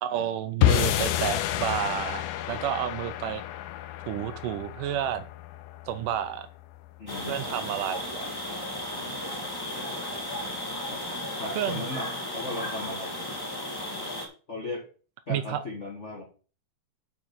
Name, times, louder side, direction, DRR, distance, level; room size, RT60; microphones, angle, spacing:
voice 1, 0.0-3.4 4.1-5.2 5.9-6.5 7.3-8.3 11.6-11.8 15.3-15.6, right 10 dB, 80° right, 12 dB, 2.0 m, -30 dB
sound 1, 0.6-7.0, left 13 dB, 85° left, 2.6 m, -29 dB
voice 2, 7.0-7.4 9.0-9.3 10.9-11.0 11.4-13.2 14.5-14.9 15.3-16.2, left 2 dB, 70° left, 0 dB, 0.6 m, -37 dB
sound 2, 7.1-14.3, left 1 dB, 15° left, 0.7 m, -34 dB
7.0 x 6.1 x 5.9 m, 0.38 s
omnidirectional pair, 4.1 m